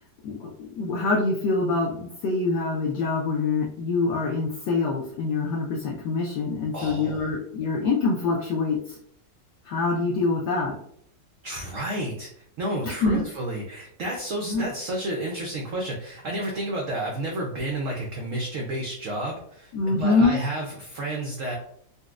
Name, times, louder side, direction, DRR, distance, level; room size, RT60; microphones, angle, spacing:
voice 1, 0.8-9.0 9.6-10.8 12.8-13.2 14.4-14.7 19.7-20.4, left 3 dB, 75° left, -2 dB, 1.1 m, -25 dB
voice 2, 6.7-7.3 11.4-12.3 12.6-21.5, right 1 dB, 85° right, 0 dB, 0.7 m, -31 dB
4.0 x 2.2 x 2.4 m, 0.66 s
omnidirectional pair, 2.0 m